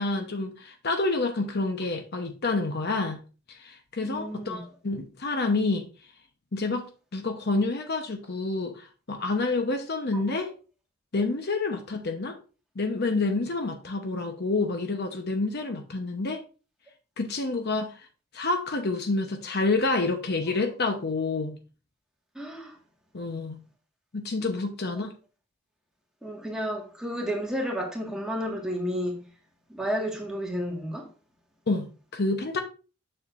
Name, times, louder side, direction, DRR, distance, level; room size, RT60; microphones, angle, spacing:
voice 1, 0.0-3.2 3.5-5.9 6.5-6.9 7.1-10.5 11.1-12.4 12.8-16.4 17.2-18.0 18.3-21.6 23.1-23.6 24.1-25.1 31.7-32.6, left 3 dB, 55° left, 0.9 m, -28 dB
voice 2, 4.0-4.7 10.1-10.4 22.4-22.8 26.2-29.2 29.7-31.1, equal, 5° right, 1.6 m, -32 dB
6.9 x 6.6 x 2.5 m
head